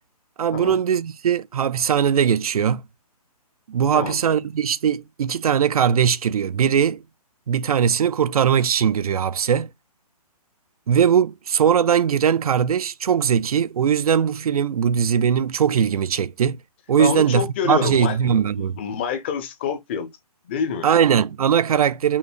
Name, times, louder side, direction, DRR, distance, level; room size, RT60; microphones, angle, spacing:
voice 1, 0.4-2.8 3.7-7.0 7.5-9.7 10.9-16.6 16.9-18.8 20.8-22.2, right 8 dB, 65° right, 0.5 m, -20 dB
voice 2, 17.0-20.1 20.4-20.9, left 7 dB, 20° left, 0.5 m, -27 dB
5.6 x 2.1 x 4.3 m
hypercardioid pair, 165°, 20 cm